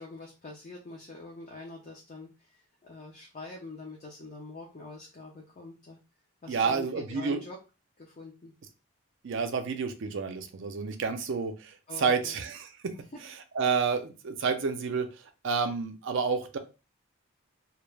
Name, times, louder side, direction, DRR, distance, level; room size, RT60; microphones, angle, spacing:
voice 1, 0.0-6.0 6.4-7.6 8.0-8.5 11.9-12.4 13.1-13.2, left 2 dB, 30° left, -2 dB, 0.4 m, -45 dB
voice 2, 6.5-7.4 9.2-12.9 13.2-16.6, right 5 dB, 55° right, 7 dB, 0.4 m, -30 dB
2.2 x 2.1 x 3.2 m, 0.31 s
head